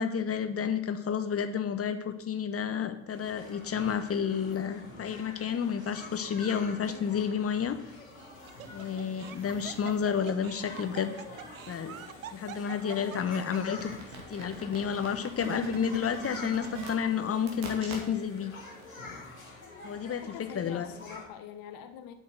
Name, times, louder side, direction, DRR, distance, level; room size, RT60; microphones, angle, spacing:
voice 1, 0.0-7.8 8.7-11.1 11.7-12.0 12.3-13.9 14.3-18.5 19.8-20.9, left 7 dB, 35° left, 9 dB, 1.2 m, -31 dB
sound 1, 3.1-21.2, left 2 dB, 90° left, 2.3 m, -47 dB
Laughter, 5.8-6.3 6.9-7.0 8.2-13.8, right 11 dB, 85° right, 0.6 m, -46 dB
sound 2, 8.2-10.2 10.7-18.4 18.8-18.9, right 5 dB, 65° right, 2.4 m, -45 dB
voice 2, 20.0-22.1, left 9 dB, 60° left, 8 dB, 1.4 m, -45 dB
7.9 x 6.2 x 7.6 m, 0.79 s
figure-of-eight pair, 45°, 40 cm